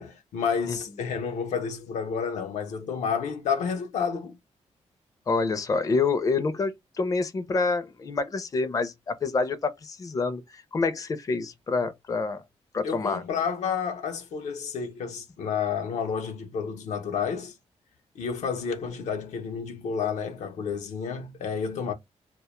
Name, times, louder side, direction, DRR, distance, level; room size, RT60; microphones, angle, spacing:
voice 1, 0.0-4.4 12.8-17.5 18.2-21.9, left 6 dB, 85° left, 0.6 m, -30 dB
voice 2, 5.3-12.4 12.7-13.2, left 4 dB, 30° left, 0.4 m, -27 dB
2.1 x 2.0 x 2.9 m
cardioid pair, 85°, 12 cm